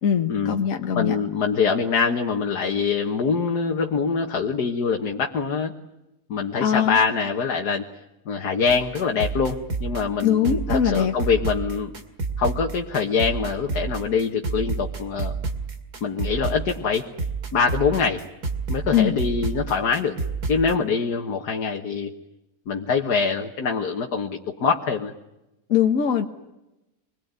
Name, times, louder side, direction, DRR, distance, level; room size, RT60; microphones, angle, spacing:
voice 1, 0.0-1.1 6.6-7.0 10.2-11.1 18.9-19.1 25.7-26.3, left 8 dB, 60° left, 5 dB, 1.5 m, -21 dB
voice 2, 0.9-5.7 6.3-7.8 8.3-11.9 12.4-15.3 16.0-17.0 17.5-18.2 18.7-20.1 20.5-22.1 22.7-25.1, left 5 dB, 80° left, 2 dB, 1.9 m, -24 dB
sound 1, 8.7-20.8, right 4 dB, 75° right, 2.8 m, -30 dB
26.0 x 21.5 x 9.5 m, 0.96 s
omnidirectional pair, 1.7 m